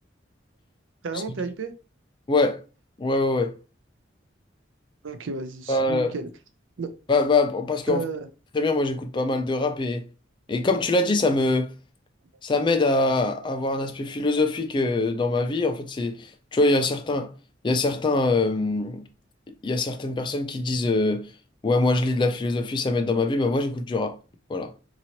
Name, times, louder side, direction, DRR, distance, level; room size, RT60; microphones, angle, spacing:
voice 1, 1.0-1.7 5.0-6.3 6.8-6.9 7.9-8.3, right 4 dB, 75° right, 0.5 m, -32 dB
voice 2, 2.3-2.6 3.0-3.5 5.7-6.1 7.1-8.1 8.5-10.1 10.5-11.7 12.4-17.3 17.6-19.0 19.5-21.3 21.6-24.2 24.5-24.7, left 2 dB, 25° left, 0.3 m, -23 dB
2.9 x 2.6 x 2.8 m
head